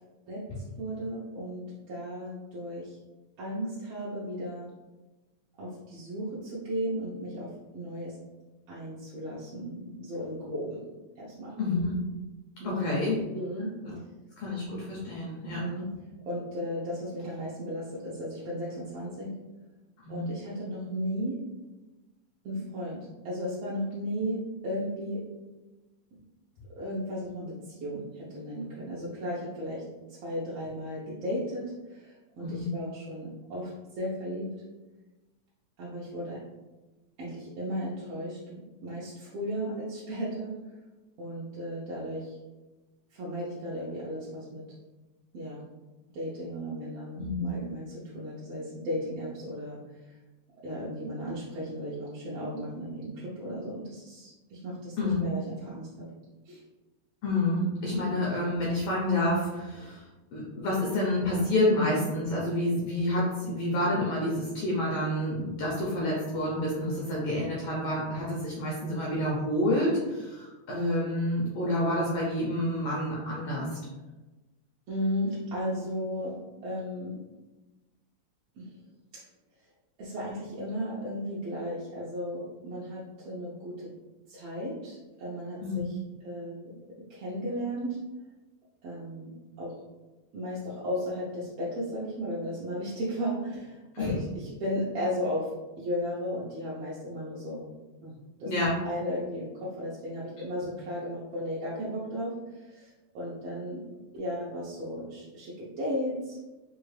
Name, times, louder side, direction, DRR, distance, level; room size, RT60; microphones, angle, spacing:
voice 1, 0.3-3.0 3.4-4.7 5.6-8.2 8.7-10.8 11.2-11.6 12.6-12.9 13.3-13.7 15.6-16.0 16.2-19.4 20.1-21.4 22.4-25.3 26.1-26.2 26.7-34.5 35.8-36.4 37.2-40.6 41.2-42.4 43.1-44.7 45.3-45.6 46.1-50.2 50.6-56.1 56.4-56.6 74.9-77.2 78.5-78.8 79.1-79.2 80.0-83.9 84.3-86.0 86.2-86.7 87.1-88.0 88.8-89.8 90.3-97.7 98.0-98.1 98.4-98.5 98.8-103.9 104.1-106.4, equal, 70° right, -7 dB, 1.5 m, -35 dB
voice 2, 11.6-12.0 12.6-13.4 13.8-13.9 14.4-15.6 20.0-20.3 32.4-32.7 47.2-47.4 55.0-55.2 57.2-60.0 60.3-73.8 85.6-85.8 93.9-94.2 98.4-98.7, left 1 dB, 75° left, -5 dB, 1.4 m, -28 dB
4.7 x 2.4 x 3.2 m, 1.1 s
omnidirectional pair, 3.4 m